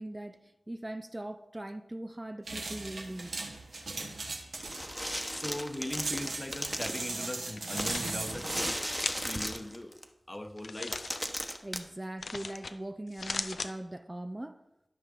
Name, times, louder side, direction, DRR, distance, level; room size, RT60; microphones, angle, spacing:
voice 1, 0.0-3.4 11.6-14.6, right 1 dB, 25° right, 0.4 m, -40 dB
sound 1, 2.4-8.8, right 3 dB, 85° right, 1.3 m, -38 dB
sound 2, 4.6-7.1 7.8-10.0 10.6-10.7 10.9-11.8, equal, ahead, 1.0 m, -36 dB
voice 2, 5.3-8.8 9.2-9.9 10.3-11.1, left 1 dB, 25° left, 1.0 m, -39 dB
sound 3, 7.5-8.1 8.9-9.4 10.6-11.2 12.2-12.7 13.1-13.7, left 4 dB, 85° left, 0.5 m, -38 dB
13.0 x 5.6 x 3.7 m
cardioid pair, 45°, 0 cm